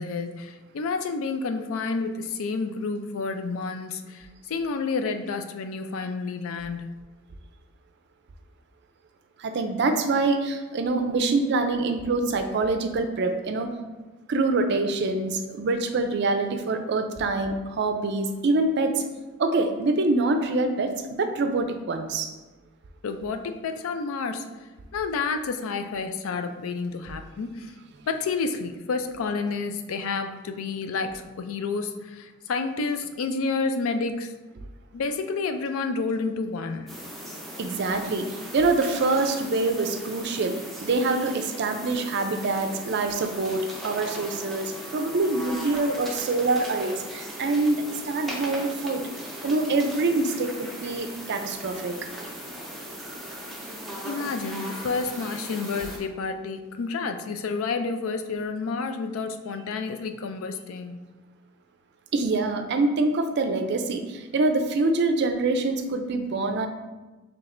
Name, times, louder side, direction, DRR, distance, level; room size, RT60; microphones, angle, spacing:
voice 1, 0.0-6.9 23.0-24.5 24.9-27.7 28.1-34.3 34.9-36.9 54.0-61.0, left 4 dB, 80° left, 7 dB, 0.4 m, -30 dB
voice 2, 9.4-13.7 14.3-18.9 19.4-22.3 37.6-38.2 38.5-40.6 40.8-49.0 49.4-51.9 62.1-64.0 64.3-66.7, right 3 dB, 55° right, 7 dB, 0.4 m, -25 dB
sound 1, 36.9-56.0, right 1 dB, ahead, 0.6 m, -38 dB
5.9 x 3.3 x 2.5 m, 1.2 s
head